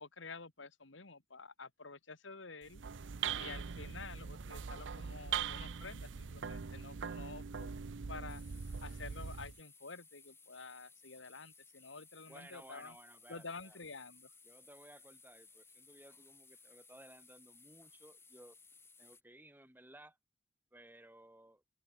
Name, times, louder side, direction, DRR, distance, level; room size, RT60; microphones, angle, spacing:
voice 1, 0.0-2.8 3.3-7.7 8.1-8.4 8.8-13.0 13.3-14.3, left 4 dB, 85° left, 2.2 m, -50 dB
sound 1, 2.6-9.6, right 6 dB, 75° right, 0.6 m, -41 dB
sound 2, 8.3-19.2, left 4 dB, 15° left, 5.5 m, -61 dB
voice 2, 12.3-13.8 14.4-18.6 19.0-20.2 20.7-21.6, right 1 dB, 10° right, 2.7 m, -58 dB
open air
head